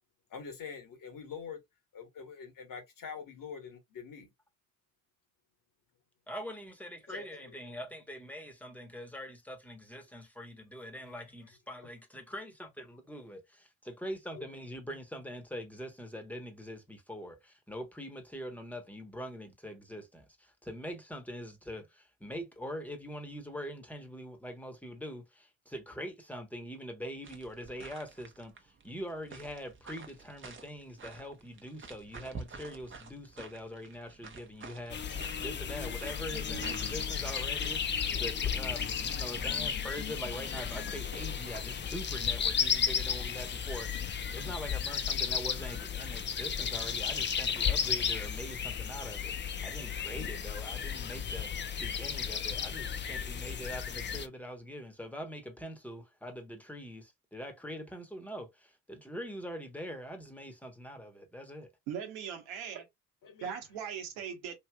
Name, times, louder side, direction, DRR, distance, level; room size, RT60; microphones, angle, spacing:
voice 1, 0.3-1.6 1.9-4.3 7.1-7.5 11.0-11.3 14.3-14.5 63.2-63.6, left 6 dB, 55° left, 1.3 m, -45 dB
voice 2, 6.3-61.7, equal, 5° left, 1.1 m, -43 dB
sound 1, 27.2-43.2, right 5 dB, 30° right, 0.9 m, -50 dB
sound 2, 34.9-54.3, left 7 dB, 30° left, 0.5 m, -34 dB
voice 3, 61.9-62.9 63.4-64.5, right 8 dB, 80° right, 1.0 m, -39 dB
3.1 x 2.7 x 2.3 m
hypercardioid pair, 55°, 40 cm